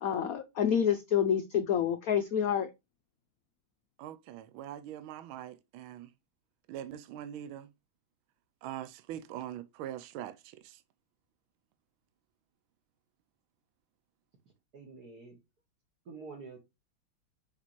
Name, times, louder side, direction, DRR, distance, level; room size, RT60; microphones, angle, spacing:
voice 1, 0.0-2.7, left 8 dB, 85° left, 0.7 m, -28 dB
voice 2, 4.0-6.1 6.7-7.7 8.6-10.8, right 11 dB, 75° right, 1.4 m, -42 dB
voice 3, 14.7-15.4 16.1-16.6, right 4 dB, 50° right, 1.8 m, -47 dB
6.6 x 5.0 x 3.1 m
omnidirectional pair, 2.3 m